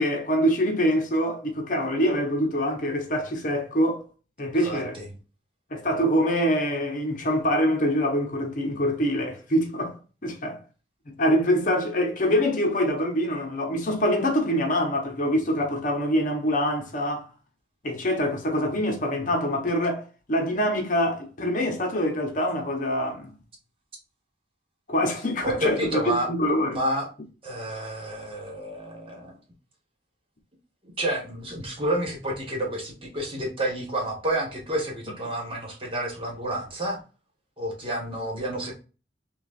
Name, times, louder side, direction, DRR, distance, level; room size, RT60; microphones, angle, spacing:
voice 1, 0.0-4.0 4.4-5.0 5.7-9.9 10.2-10.6 11.1-17.3 17.8-20.0 20.3-23.3 24.9-26.8, equal, 50° left, 0.8 m, -25 dB
voice 2, 4.6-5.1 25.4-26.3 26.7-27.1 27.4-29.3 31.0-37.0 37.6-38.8, right 1 dB, 30° right, 1.3 m, -29 dB
6.0 x 2.4 x 2.4 m
head